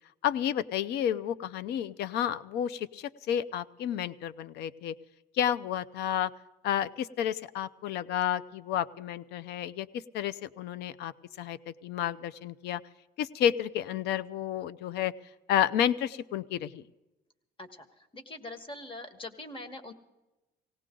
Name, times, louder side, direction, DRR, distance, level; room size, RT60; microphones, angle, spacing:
voice 1, 0.2-4.9 5.4-6.3 6.6-9.9 10.1-11.6 11.8-12.8 13.2-15.1 15.5-16.8, left 10 dB, 75° left, 16 dB, 0.6 m, -31 dB
voice 2, 17.6-19.9, left 2 dB, 30° left, 10 dB, 1.6 m, -43 dB
19.0 x 17.5 x 3.8 m, 1.0 s
cardioid pair, 110°, 17 cm